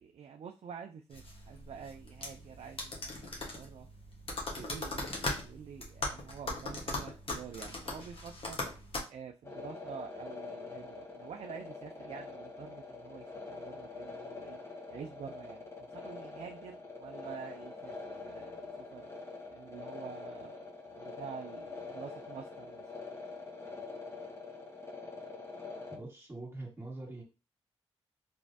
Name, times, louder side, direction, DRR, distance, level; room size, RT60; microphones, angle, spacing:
voice 1, 0.0-3.9 4.4-5.2 5.4-8.6 9.1-14.6 14.9-19.1 19.5-22.9, right 7 dB, 65° right, 0.4 m, -48 dB
sound 1, 1.1-9.0, left 2 dB, 55° left, 1.2 m, -39 dB
sound 2, 9.4-26.0, left 3 dB, 25° left, 1.3 m, -45 dB
voice 2, 25.9-27.2, right 2 dB, 25° right, 1.8 m, -43 dB
3.4 x 3.0 x 2.7 m
supercardioid pair, 45°, 11 cm